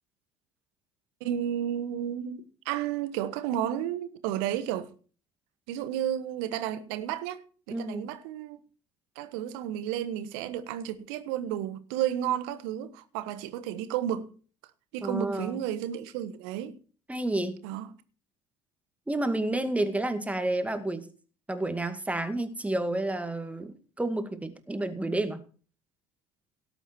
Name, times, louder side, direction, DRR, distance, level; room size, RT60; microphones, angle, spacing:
voice 1, 1.2-4.9 5.7-8.6 9.2-14.3 14.9-16.8 17.6-17.9, right 11 dB, 65° right, 1.3 m, -32 dB
voice 2, 7.7-8.0 15.0-15.6 17.1-17.6 19.1-21.1 21.5-25.4, right 1 dB, 10° right, 2.2 m, -30 dB
17.5 x 8.3 x 4.6 m
figure-of-eight pair, 55°, 15 cm